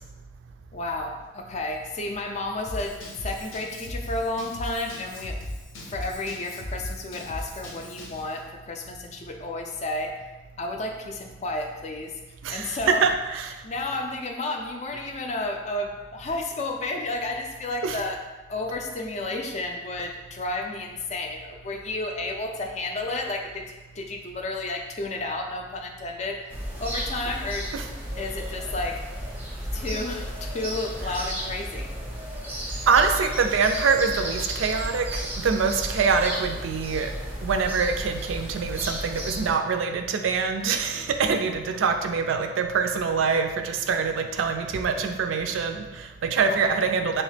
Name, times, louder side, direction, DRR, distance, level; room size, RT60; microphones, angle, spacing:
voice 1, 0.7-5.4 5.9-10.1 10.6-12.1 12.5-13.1 13.6-18.2 18.5-23.6 23.9-26.5 26.8-27.7 28.2-29.0 29.7-31.9 40.9-41.1 46.5-46.6, left 2 dB, 35° left, 3 dB, 0.4 m, -32 dB
Drum kit / Drum, 2.7-8.2, left 1 dB, 90° left, 0.7 m, -37 dB
voice 2, 12.4-13.5 17.8-18.0 27.7-27.9 32.9-37.1 37.4-47.2, right 5 dB, 75° right, 6 dB, 0.3 m, -24 dB
sound 1, 26.5-39.5, equal, 10° right, 0.6 m, -33 dB
3.1 x 3.0 x 3.2 m, 1.2 s
head